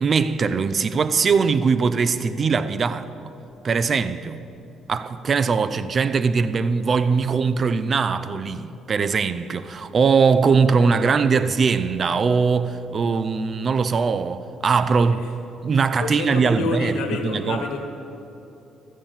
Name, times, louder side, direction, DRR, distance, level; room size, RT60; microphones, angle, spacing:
voice 1, 0.0-3.1 3.6-4.4 4.9-15.2 15.6-16.9 17.2-17.6, right 5 dB, 45° right, 0.5 m, -21 dB
voice 2, 15.0-15.3 16.0-17.8, left 3 dB, 85° left, 1.7 m, -28 dB
13.5 x 7.4 x 7.2 m
cardioid pair, 90°, 0 cm